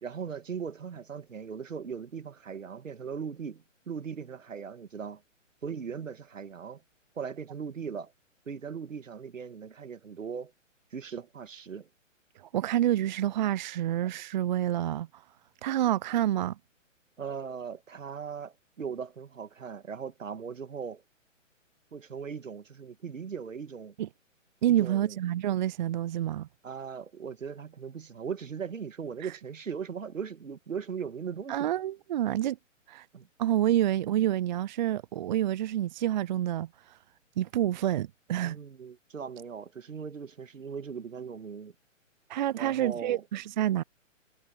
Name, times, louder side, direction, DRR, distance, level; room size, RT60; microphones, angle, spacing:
voice 1, 0.0-5.2 5.6-6.8 7.2-8.1 8.5-10.5 10.9-11.9 17.2-21.0 21.9-23.9 24.7-25.2 26.6-31.7 33.1-33.3 33.7-33.8 38.4-41.7 42.6-43.2, right 6 dB, 75° right, 1.9 m, -39 dB
voice 2, 12.4-15.2 15.6-16.6 24.0-24.1 24.6-26.5 31.5-32.6 32.9-33.1 33.4-37.0 37.4-38.6 42.3-43.8, right 12 dB, 35° right, 0.6 m, -28 dB
figure-of-eight pair, 130°, 39 cm